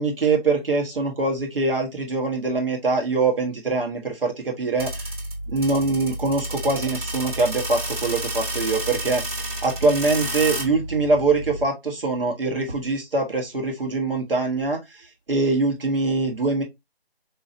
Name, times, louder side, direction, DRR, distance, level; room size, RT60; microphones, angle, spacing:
voice 1, 0.0-5.1 5.5-9.2 9.6-14.8 15.3-16.6, right 3 dB, 60° right, 1.6 m, -23 dB
sound 1, 4.8-11.7, right 1 dB, 35° right, 1.7 m, -30 dB
4.2 x 3.0 x 2.6 m
figure-of-eight pair, 170°, 31 cm